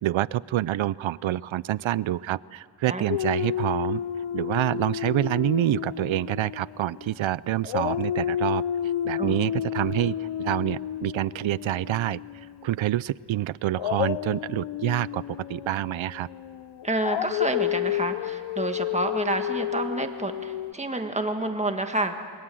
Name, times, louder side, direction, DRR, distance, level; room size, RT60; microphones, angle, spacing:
voice 1, 0.0-4.0 4.3-8.6 9.0-12.2 12.6-15.2 15.5-16.3, right 13 dB, 75° right, 21 dB, 0.6 m, -27 dB
Dog, 3.1-7.3 7.6-12.6 13.7-20.7, left 11 dB, 75° left, 0.6 m, -31 dB
voice 2, 16.8-22.1, right 2 dB, 15° right, 6 dB, 1.6 m, -29 dB
28.0 x 21.0 x 7.8 m, 2.1 s
wide cardioid pair, 120°, 48 cm